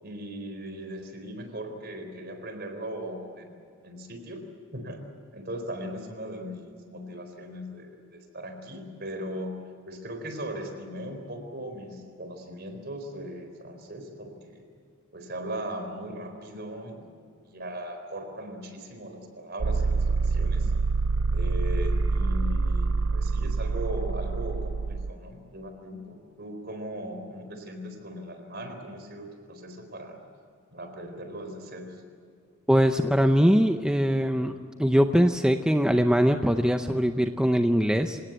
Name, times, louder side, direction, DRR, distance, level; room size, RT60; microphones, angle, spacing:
voice 1, 0.0-4.4 4.7-5.0 5.3-9.5 9.9-14.6 15.1-17.0 17.4-20.7 21.3-30.2 30.7-32.0, right 1 dB, 50° right, 6 dB, 4.2 m, -38 dB
sound 1, 19.6-25.1, right 3 dB, 70° right, 0.5 m, -26 dB
voice 2, 32.7-34.5 34.8-38.2, equal, 5° right, 6 dB, 0.6 m, -22 dB
27.5 x 18.0 x 8.1 m, 2.4 s
head